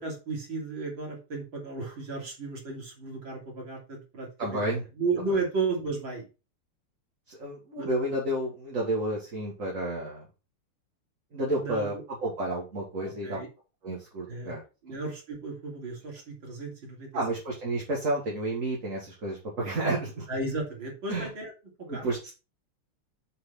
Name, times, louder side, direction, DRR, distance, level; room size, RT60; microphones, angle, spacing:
voice 1, 0.0-6.3 7.8-7.9 11.5-12.0 13.0-13.5 14.3-14.5 14.8-17.1 20.3-21.5 21.8-22.1, right 3 dB, 60° right, -2 dB, 3.8 m, -34 dB
voice 2, 4.4-4.8 7.3-10.2 11.3-11.9 12.2-13.4 13.8-14.6 14.9-15.0 17.1-20.3 21.1-21.3 21.9-22.3, right 1 dB, 35° right, -3 dB, 2.3 m, -31 dB
7.4 x 4.8 x 5.7 m, 0.31 s
omnidirectional pair, 2.4 m